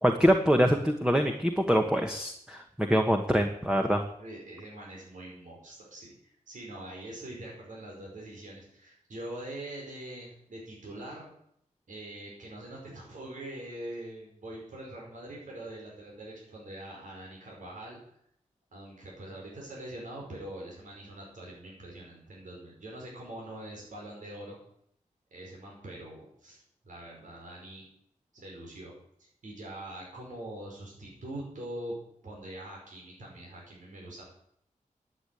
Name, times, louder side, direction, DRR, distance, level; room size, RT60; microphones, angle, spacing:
voice 1, 0.0-4.0, equal, 5° right, 4 dB, 1.3 m, -24 dB
voice 2, 4.2-11.3 11.9-18.0 18.7-24.6 25.3-27.8 28.3-28.9 29.2-32.0 32.2-34.2, right 1 dB, 75° right, -3 dB, 5.4 m, -43 dB
11.5 x 8.4 x 9.1 m, 0.71 s
wide cardioid pair, 90°, 13 cm